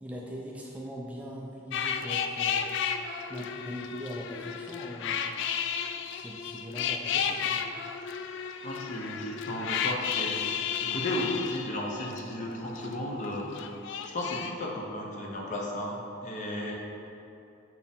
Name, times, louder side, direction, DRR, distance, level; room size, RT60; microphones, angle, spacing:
voice 1, 0.0-2.8 3.3-5.4 6.1-7.6, equal, 5° right, -3 dB, 0.4 m, -41 dB
sound 1, 1.7-12.9 13.2-14.5, left 7 dB, 65° left, 0.3 m, -33 dB
voice 2, 8.6-10.4 10.8-13.5 14.0-16.7, left 1 dB, 40° left, -1 dB, 0.8 m, -34 dB
6.2 x 4.7 x 3.5 m, 2.7 s
head